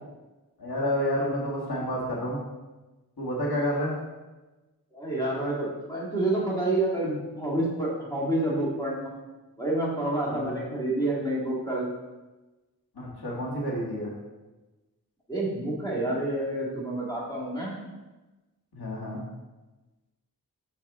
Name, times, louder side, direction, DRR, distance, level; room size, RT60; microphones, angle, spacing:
voice 1, 0.6-2.4 3.2-4.0 10.3-10.6 13.0-14.1 18.7-19.2, equal, 90° left, -5 dB, 1.8 m, -29 dB
voice 2, 4.9-9.1 9.6-11.9 15.3-17.8, right 1 dB, 10° left, -5 dB, 2.0 m, -28 dB
6.3 x 5.6 x 3.6 m, 1.1 s
wide cardioid pair, 90°, 37 cm